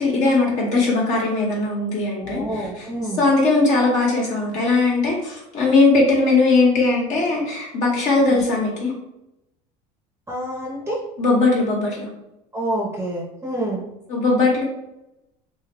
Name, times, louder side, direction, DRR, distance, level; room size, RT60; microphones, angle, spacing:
voice 1, 0.0-2.9 3.2-8.9 11.2-12.1 14.1-14.6, left 3 dB, 50° left, -2 dB, 0.8 m, -19 dB
voice 2, 2.2-3.3 8.1-8.4 10.3-11.0 12.5-13.8, right 1 dB, 15° right, -3 dB, 0.7 m, -27 dB
2.8 x 2.3 x 3.5 m, 0.89 s
supercardioid pair, 130°, 16 cm